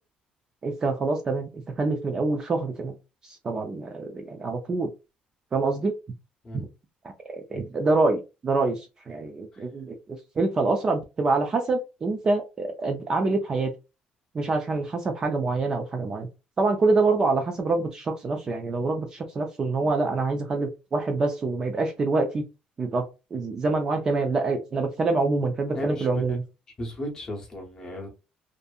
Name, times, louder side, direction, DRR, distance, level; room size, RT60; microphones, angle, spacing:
voice 1, 0.6-1.5 1.8-2.9 3.2-4.9 5.5-5.9 7.3-10.0 10.4-13.7 14.3-16.3 16.6-22.4 22.8-23.0 23.3-26.4, right 3 dB, 20° right, 0.3 m, -26 dB
voice 2, 25.7-26.4 26.8-28.1, equal, 25° left, 0.7 m, -35 dB
2.6 x 2.5 x 2.3 m
cardioid pair, 180°, 3 cm